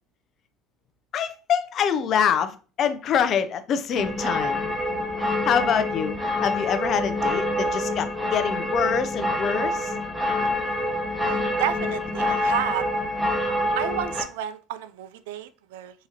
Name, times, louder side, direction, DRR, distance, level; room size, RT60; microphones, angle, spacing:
voice 1, 1.1-4.7 5.4-9.9, left 7 dB, 55° left, 0.5 m, -25 dB
sound 1, 4.0-14.2, left 1 dB, 5° right, 1.0 m, -26 dB
voice 2, 11.2-12.9 13.1-13.5 13.8-16.1, right 11 dB, 85° right, 0.3 m, -31 dB
3.7 x 3.0 x 2.8 m
supercardioid pair, 80°, 0 cm